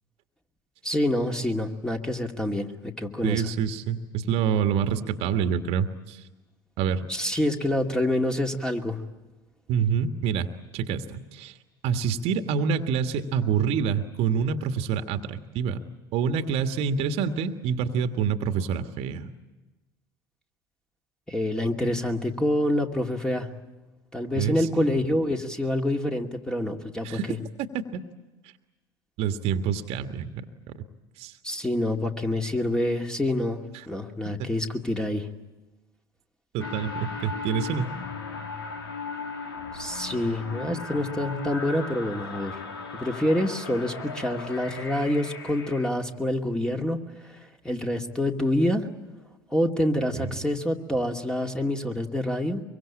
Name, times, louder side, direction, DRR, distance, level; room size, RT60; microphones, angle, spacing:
voice 1, 0.8-3.4 7.1-9.0 21.3-23.5 24.1-27.4 31.4-33.6 33.9-35.3 39.7-42.6 43.0-47.3 47.6-48.9 49.5-52.6, left 1 dB, 5° left, 3 dB, 2.4 m, -27 dB
voice 2, 3.2-6.2 6.8-7.0 9.7-11.5 11.8-15.8 16.1-19.3 24.3-24.9 27.0-27.3 27.9-28.0 29.2-30.4 31.2-31.3 36.5-37.9 50.1-50.3, right 7 dB, 55° right, 8 dB, 1.6 m, -27 dB
sound 1, 36.6-45.9, left 4 dB, 85° left, 2.3 m, -37 dB
24.0 x 23.5 x 8.7 m, 1.1 s
hypercardioid pair, 75°, 12 cm